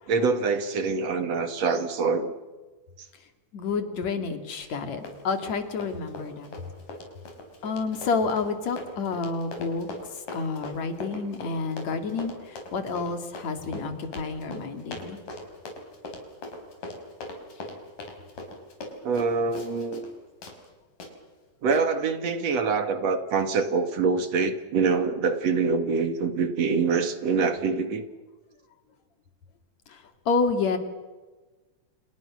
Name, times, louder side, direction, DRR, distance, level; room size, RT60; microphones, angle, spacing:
voice 1, 0.1-2.3 3.0-3.1 19.0-20.0 21.6-28.0, right 4 dB, 55° right, 9 dB, 3.0 m, -25 dB
voice 2, 3.5-6.5 7.6-9.9 10.1-15.2 29.9-30.8, left 4 dB, 60° left, 7 dB, 3.8 m, -29 dB
Run, 4.5-4.8 5.1-20.1 20.4-20.6 21.0-21.1 21.7-21.8, left 2 dB, 85° left, 6.4 m, -40 dB
30.0 x 29.5 x 6.5 m, 1.2 s
omnidirectional pair, 3.7 m